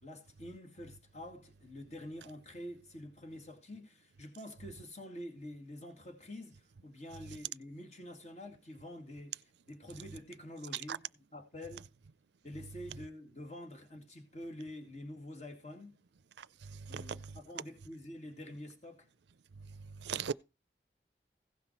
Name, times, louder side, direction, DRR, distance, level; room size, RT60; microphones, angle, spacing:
voice 1, 0.0-11.0 11.3-11.8 12.4-16.0 16.9-19.1, left 1 dB, 40° left, 2.1 m, -47 dB
voice 2, 16.9-17.2 20.0-20.3, right 6 dB, 80° right, 0.5 m, -37 dB
16.0 x 5.8 x 4.5 m
head